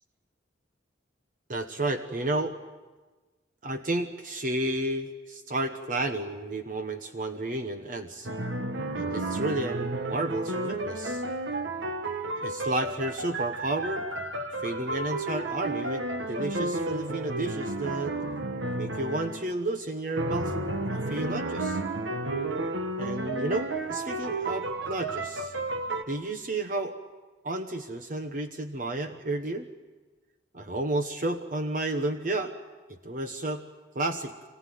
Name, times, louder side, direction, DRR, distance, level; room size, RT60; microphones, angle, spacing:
voice 1, 1.5-2.5 3.6-8.3 8.9-11.2 12.4-14.1 14.6-18.1 18.7-20.5 20.9-21.8 23.0-25.5 26.1-27.0 27.4-29.7 30.5-32.5 32.9-33.6 33.9-34.3, right 2 dB, 45° right, 6 dB, 1.1 m, -31 dB
sound 1, 8.2-19.5 20.2-26.0, right 2 dB, 70° right, 1.6 m, -32 dB
25.5 x 19.0 x 9.4 m, 1.3 s
head